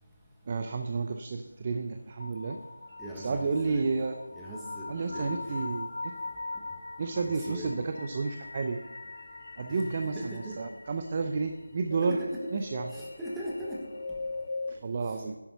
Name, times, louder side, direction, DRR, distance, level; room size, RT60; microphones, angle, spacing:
voice 1, 0.5-2.6 3.2-4.2 4.9-6.1 7.0-8.8 9.6-12.2 12.5-12.9 14.7-15.4, right 4 dB, 25° right, 6 dB, 0.5 m, -31 dB
sound 1, 2.2-14.7, left 3 dB, 45° left, 2.3 m, -41 dB
voice 2, 3.0-3.8 4.4-5.3 7.2-7.7 10.1-10.6 12.0-12.4 12.9-13.8, equal, 5° right, -5 dB, 1.3 m, -39 dB
10.5 x 8.8 x 6.8 m, 1.1 s
figure-of-eight pair, 175°, 0 cm